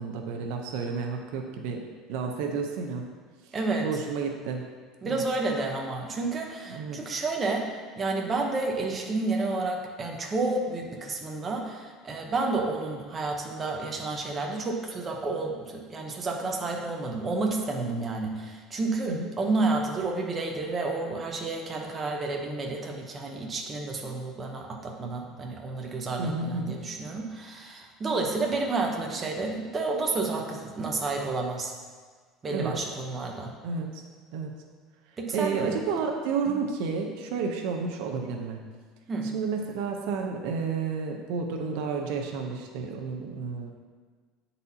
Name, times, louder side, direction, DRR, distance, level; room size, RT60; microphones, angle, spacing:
voice 1, 0.0-1.8 2.1-3.0 3.8-4.7 5.0-5.2 6.7-7.0 19.1-19.3 26.2-26.8 32.5-32.7 33.6-33.9 34.3-34.5 35.3-38.7 39.3-43.7, right 5 dB, 75° right, 2 dB, 0.7 m, -31 dB
voice 2, 3.5-3.9 5.0-31.7 32.4-33.5 35.2-35.8 36.5-36.6 39.1-39.3, right 3 dB, 25° right, 1 dB, 0.8 m, -30 dB
9.5 x 4.1 x 2.8 m, 1.5 s
cardioid pair, 135°, 0 cm